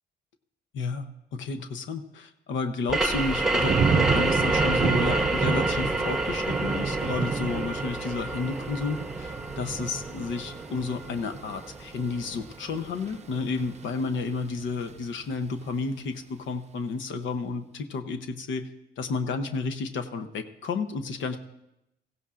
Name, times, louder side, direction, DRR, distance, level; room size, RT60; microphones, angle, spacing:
voice 1, 0.7-18.7 19.0-21.4, left 4 dB, 75° left, 7 dB, 0.9 m, -31 dB
sound 1, 2.9-12.2, right 2 dB, 5° right, 1.0 m, -28 dB
Thunder / Rain, 3.2-14.1 14.5-15.0, right 6 dB, 35° right, 0.6 m, -31 dB
16.0 x 15.5 x 2.5 m, 0.86 s
cardioid pair, 90°, 20 cm